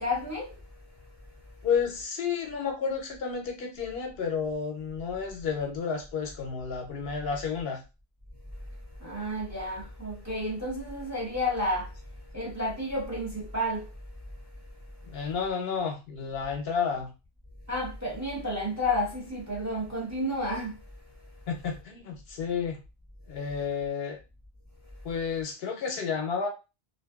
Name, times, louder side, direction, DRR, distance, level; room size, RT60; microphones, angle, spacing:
voice 1, 0.0-1.7 8.4-15.3 17.6-21.5 23.3-23.5 24.8-25.1, left 1 dB, 20° right, 0.6 m, -33 dB
voice 2, 1.6-7.8 15.1-17.1 21.5-22.8 23.3-24.2 25.0-26.5, left 6 dB, 75° left, 0.8 m, -31 dB
2.5 x 2.2 x 2.3 m
omnidirectional pair, 1.0 m